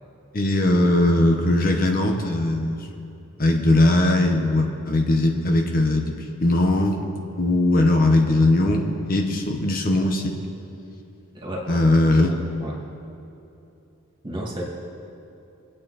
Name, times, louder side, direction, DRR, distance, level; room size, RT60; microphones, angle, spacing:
voice 1, 0.3-2.9 3.4-6.2 6.4-7.0 7.4-10.4 11.7-12.3, left 2 dB, 40° left, 2 dB, 1.2 m, -19 dB
voice 2, 11.3-11.8 12.2-12.8 14.2-14.6, equal, 25° right, -2 dB, 2.4 m, -32 dB
24.5 x 9.0 x 4.3 m, 2.8 s
head